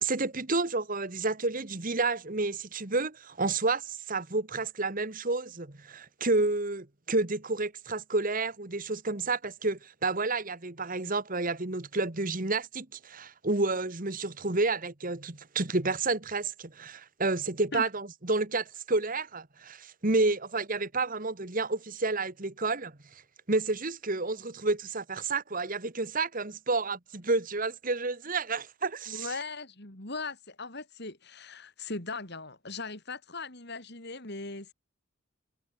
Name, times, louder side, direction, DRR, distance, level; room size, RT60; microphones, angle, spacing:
voice 1, 0.0-22.9 23.5-29.3, right 3 dB, 40° right, 1.6 m, -30 dB
voice 2, 29.1-34.7, left 3 dB, 50° left, 3.9 m, -39 dB
head